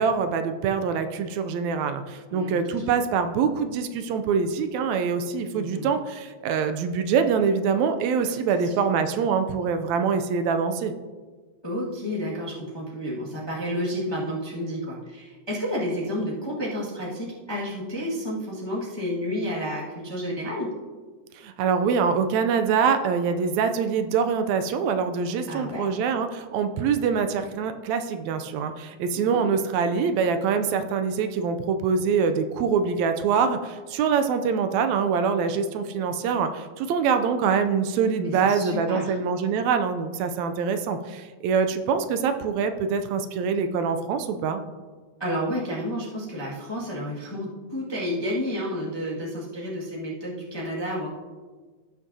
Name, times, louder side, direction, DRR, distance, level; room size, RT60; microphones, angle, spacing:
voice 1, 0.0-10.9 21.4-44.6, right 6 dB, 80° right, 8 dB, 1.7 m, -24 dB
voice 2, 2.3-2.8 5.5-5.9 8.2-8.4 8.6-8.7 11.6-20.7 25.5-25.9 29.1-29.4 38.2-39.1 45.2-51.1, equal, 40° left, -6 dB, 0.3 m, -31 dB
16.5 x 6.1 x 2.7 m, 1.4 s
omnidirectional pair, 3.6 m